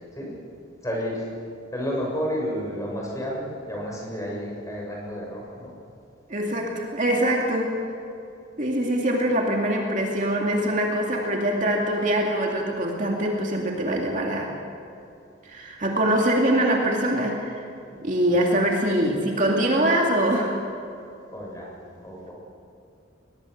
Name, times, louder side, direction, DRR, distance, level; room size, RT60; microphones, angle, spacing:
voice 1, 0.8-1.3 1.7-5.7 17.8-17.9 18.3-18.4 21.3-21.7 22.0-22.3, equal, 15° left, -2 dB, 6.6 m, -31 dB
voice 2, 6.3-7.7 8.6-14.5 15.4-17.6 18.0-20.6, right 1 dB, 40° right, 0 dB, 2.5 m, -23 dB
22.5 x 21.5 x 6.6 m, 2.6 s
head